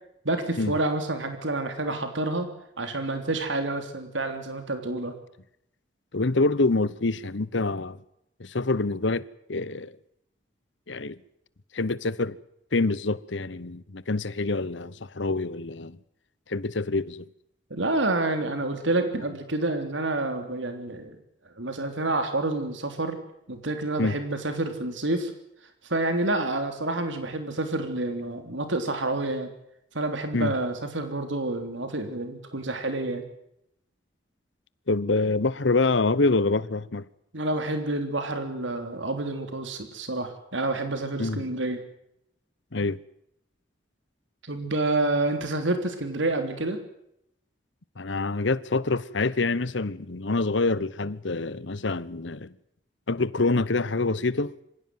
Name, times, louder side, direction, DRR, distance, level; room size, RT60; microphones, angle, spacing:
voice 1, 0.3-2.5 2.8-5.1 17.7-21.2 21.6-23.2 23.5-25.3 25.9-29.5 29.9-33.2 37.3-41.8 44.4-46.8, right 2 dB, 80° right, 3.5 m, -28 dB
voice 2, 6.1-8.0 8.4-10.0 10.9-11.2 11.7-12.4 12.7-16.0 16.5-17.3 24.0-24.2 30.3-30.5 34.9-37.1 41.2-41.5 42.7-43.0 48.0-52.5 53.1-54.6, left 3 dB, 75° left, 1.0 m, -26 dB
26.0 x 16.5 x 9.4 m
head